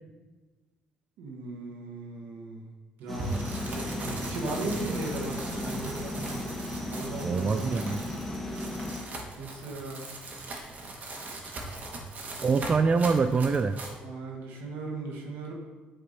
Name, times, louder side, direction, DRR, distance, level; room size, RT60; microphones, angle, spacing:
voice 1, 1.2-2.6 3.0-6.4 6.9-7.9 9.4-10.1 14.0-15.5, right 3 dB, 85° right, 0 dB, 1.4 m, -38 dB
sound 1, 3.1-9.1, left 1 dB, 5° left, 1.3 m, -36 dB
sound 2, 3.2-14.0, right 2 dB, 50° right, 1.3 m, -39 dB
voice 2, 7.2-8.0 12.4-13.8, right 4 dB, 30° right, 9 dB, 0.3 m, -25 dB
8.6 x 3.5 x 4.1 m, 1.3 s
cardioid pair, 90°, 3 cm